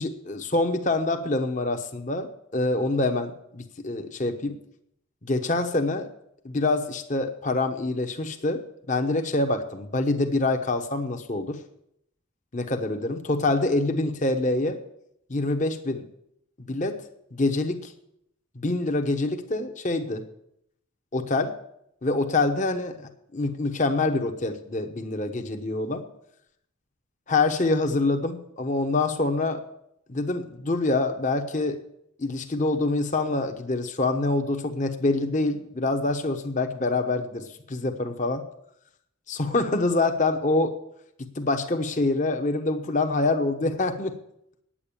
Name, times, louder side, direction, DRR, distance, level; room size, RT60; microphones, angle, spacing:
voice 1, 0.0-4.6 5.2-6.1 6.4-8.6 8.9-11.6 12.5-14.8 15.3-16.1 16.6-17.0 17.3-17.9 18.5-20.2 21.1-21.5 22.0-23.0 23.3-26.0 27.3-29.6 30.1-31.8 32.2-38.4 39.3-40.7 41.4-44.2, left 2 dB, 35° left, 6 dB, 1.0 m, -25 dB
9.4 x 8.7 x 8.7 m, 0.77 s
head